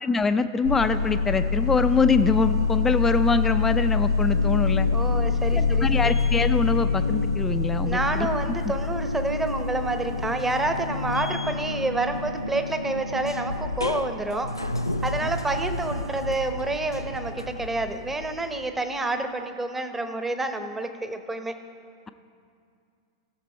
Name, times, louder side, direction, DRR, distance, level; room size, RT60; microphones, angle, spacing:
voice 1, 0.0-4.9 5.5-8.3, left 4 dB, 15° left, 10 dB, 0.5 m, -24 dB
sound 1, 0.6-18.7, left 4 dB, 90° left, 0.5 m, -26 dB
voice 2, 4.9-6.1 7.8-14.5 15.0-21.6, right 2 dB, 10° right, 7 dB, 0.9 m, -28 dB
17.0 x 6.7 x 4.4 m, 2.4 s
figure-of-eight pair, 95°, 2 cm